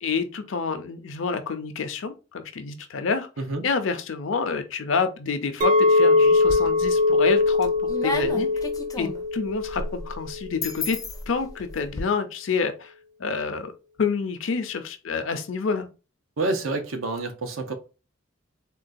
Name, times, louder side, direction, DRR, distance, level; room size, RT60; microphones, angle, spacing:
voice 1, 0.0-3.3 3.6-8.5 9.0-11.0 11.3-12.9 13.2-13.7 14.0-15.9, left 5 dB, 70° left, 0.5 m, -28 dB
Chink clink, 5.6-10.0 10.3-10.7, left 3 dB, 40° right, 0.4 m, -21 dB
sound 1, 6.3-7.0 7.4-12.0, left 2 dB, 20° left, 0.4 m, -33 dB
voice 2, 16.4-17.7, right 2 dB, 80° right, 0.7 m, -28 dB
3.7 x 2.2 x 2.5 m
head